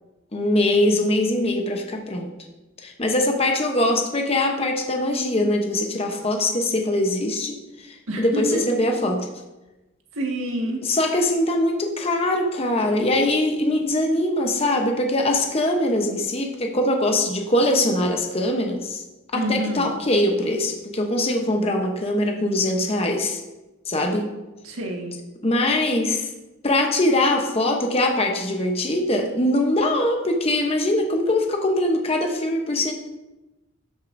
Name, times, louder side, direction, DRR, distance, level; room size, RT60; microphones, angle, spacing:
voice 1, 0.3-2.3 2.8-9.3 10.9-19.0 19.3-23.4 23.9-24.3 25.4-26.3 26.6-32.9, left 1 dB, 30° left, 3 dB, 0.8 m, -22 dB
voice 2, 8.1-8.6 10.1-10.8 19.3-19.9 24.6-25.2, right 1 dB, 85° right, 0 dB, 1.6 m, -27 dB
12.5 x 6.5 x 2.6 m, 1.1 s
head